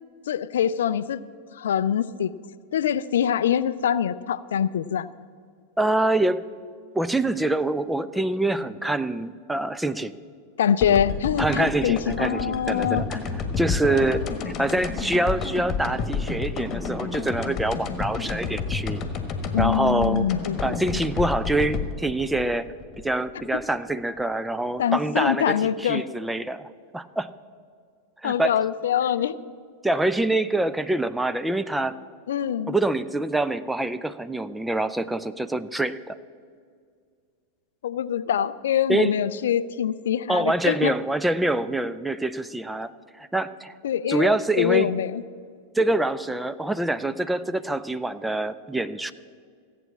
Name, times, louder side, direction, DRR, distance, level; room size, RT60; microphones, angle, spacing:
voice 1, 0.3-1.2 1.5-2.3 2.7-5.1 10.6-13.0 13.9-14.5 19.5-21.0 24.8-26.0 28.2-29.4 32.3-32.8 37.8-40.9 43.8-45.2, left 9 dB, 60° left, 16 dB, 0.4 m, -24 dB
voice 2, 5.8-6.4 6.9-10.1 11.4-13.2 13.6-19.0 19.6-20.3 20.6-22.7 23.0-27.3 28.2-28.6 29.8-32.0 32.7-36.2 38.9-39.2 40.3-42.9 43.2-43.7 44.1-44.9 45.8-49.1, right 2 dB, 5° right, 12 dB, 0.5 m, -25 dB
sound 1, 10.8-23.6, left 5 dB, 30° left, 1.4 m, -30 dB
15.0 x 8.4 x 7.3 m, 2.1 s
figure-of-eight pair, 90°, 0 cm